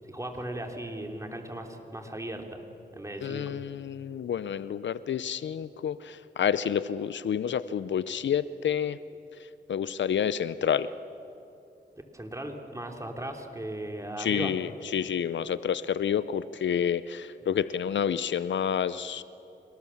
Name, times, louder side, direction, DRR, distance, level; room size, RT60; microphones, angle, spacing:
voice 1, 0.1-2.6 2.9-3.6 12.1-14.5, right 1 dB, 15° right, 3 dB, 3.3 m, -37 dB
voice 2, 3.2-9.0 9.7-10.9 14.2-19.2, left 8 dB, 75° left, 16 dB, 0.6 m, -29 dB
27.0 x 19.0 x 7.2 m, 2.7 s
cardioid pair, 55°, 19 cm